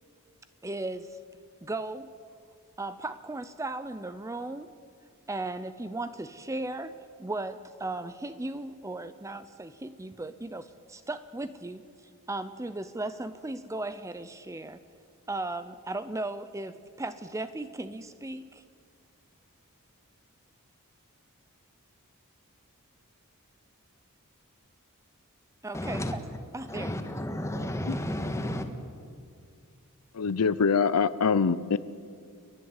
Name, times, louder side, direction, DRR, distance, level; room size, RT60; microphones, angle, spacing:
voice 1, 0.6-1.2 1.6-2.1 2.8-4.7 5.3-11.8 12.3-14.8 15.3-18.6 25.6-26.2 26.5-27.0, right 2 dB, 15° right, 12 dB, 0.5 m, -36 dB
voice 2, 25.7-26.1 26.7-28.7, left 1 dB, 15° left, 6 dB, 1.5 m, -32 dB
voice 3, 27.6-28.0 30.1-31.8, left 5 dB, 80° left, 16 dB, 0.6 m, -25 dB
30.0 x 11.0 x 8.2 m, 2.3 s
head